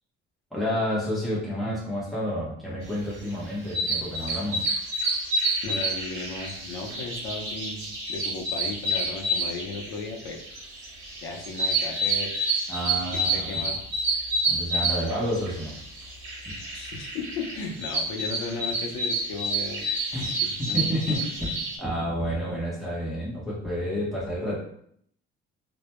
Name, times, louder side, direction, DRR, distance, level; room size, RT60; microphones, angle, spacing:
voice 1, 0.5-4.7 12.7-13.6 14.5-15.8 16.4-16.5 20.1-24.6, equal, ahead, -8 dB, 0.7 m, -30 dB
sound 1, 3.1-21.8, right 1 dB, 65° right, 0.7 m, -29 dB
voice 2, 5.6-10.4 11.2-12.3 13.1-13.8 16.7-19.9 20.4-20.8, left 3 dB, 85° left, 0 dB, 0.6 m, -35 dB
2.2 x 2.1 x 2.9 m, 0.68 s
cardioid pair, 170°, 20 cm